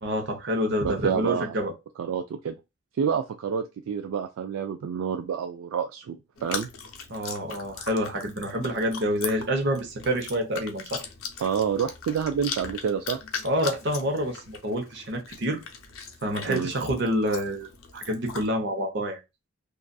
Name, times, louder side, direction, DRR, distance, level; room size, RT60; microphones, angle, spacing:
voice 1, 0.0-1.7 7.1-11.0 13.4-15.6 16.2-19.2, equal, 55° right, 3 dB, 0.8 m, -27 dB
voice 2, 0.8-1.6 2.0-2.6 3.0-6.7 11.4-13.2 16.5-16.7, right 7 dB, 75° right, 6 dB, 0.3 m, -28 dB
Chewing mastication, 6.4-18.5, left 6 dB, 75° left, 0.6 m, -39 dB
2.5 x 2.4 x 2.2 m, 0.24 s
head